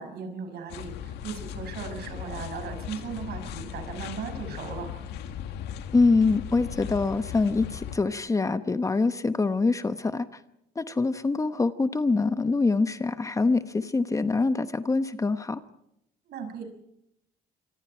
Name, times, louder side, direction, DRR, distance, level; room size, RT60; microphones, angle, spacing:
voice 1, 0.0-4.9 16.3-16.6, right 6 dB, 70° right, 6 dB, 6.1 m, -37 dB
sound 1, 0.7-8.0, left 9 dB, 80° left, 2.0 m, -38 dB
voice 2, 5.9-10.3 10.8-15.6, left 3 dB, 20° left, 11 dB, 1.0 m, -24 dB
26.0 x 24.0 x 4.5 m, 0.79 s
cardioid pair, 110°, 17 cm